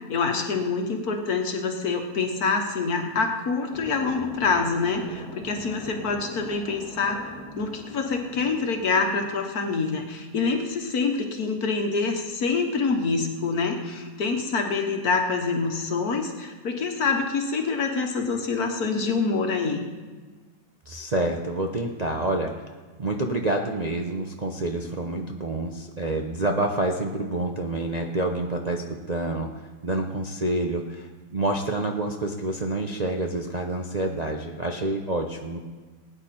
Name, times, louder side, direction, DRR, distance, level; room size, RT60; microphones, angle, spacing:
voice 1, 0.1-19.8, left 4 dB, 60° left, 4 dB, 1.8 m, -26 dB
sound 1, 3.7-10.1, left 1 dB, 5° left, 1.9 m, -42 dB
voice 2, 20.9-22.6 23.0-29.5 29.8-35.6, right 2 dB, 35° right, 1 dB, 0.7 m, -28 dB
19.5 x 9.4 x 4.3 m, 1.4 s
omnidirectional pair, 1.8 m